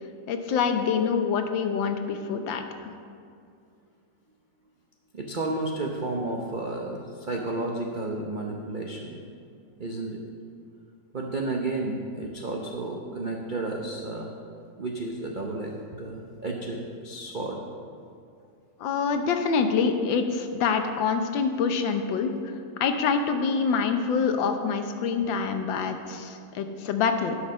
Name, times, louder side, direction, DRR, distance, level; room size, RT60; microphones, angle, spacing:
voice 1, 0.3-2.6 18.8-27.3, left 5 dB, 80° left, 7 dB, 1.5 m, -26 dB
voice 2, 5.1-9.2 9.8-10.2 11.1-14.3 14.8-17.6, right 2 dB, 70° right, 0 dB, 0.4 m, -32 dB
11.0 x 5.8 x 6.3 m, 2.4 s
omnidirectional pair, 2.0 m